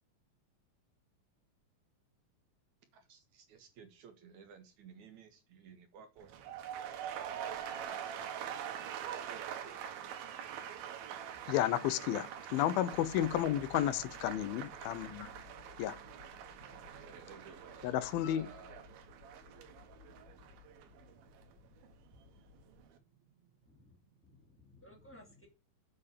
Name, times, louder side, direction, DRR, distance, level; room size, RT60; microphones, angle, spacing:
voice 1, 2.9-6.3 8.9-9.8 16.6-18.9 20.2-20.3 20.7-24.2, right 6 dB, 60° right, 2.5 m, -58 dB
sound 1, 6.2-22.2 22.5-23.0, right 9 dB, 85° right, 3.1 m, -45 dB
voice 2, 11.5-15.3 15.8-16.0 17.8-18.5, left 12 dB, 90° left, 2.6 m, -32 dB
sound 2, 12.9-22.9, left 11 dB, 70° left, 1.8 m, -60 dB
voice 3, 23.6-25.5, left 1 dB, 5° left, 2.0 m, -59 dB
7.7 x 5.5 x 6.6 m
omnidirectional pair, 4.1 m